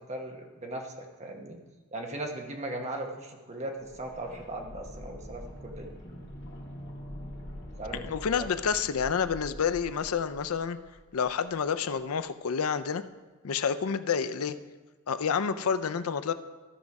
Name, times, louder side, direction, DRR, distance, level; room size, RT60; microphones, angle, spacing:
voice 1, 0.1-1.6 1.9-5.9 7.8-8.5, right 1 dB, 30° right, 2 dB, 1.1 m, -38 dB
sound 1, 3.8-11.6 11.9-12.0, equal, 55° left, 2.0 m, -45 dB
voice 2, 7.9-10.8 11.1-13.0 13.4-14.6 15.1-16.3, left 6 dB, 80° left, 12 dB, 0.5 m, -29 dB
14.5 x 5.2 x 4.8 m, 1.3 s
head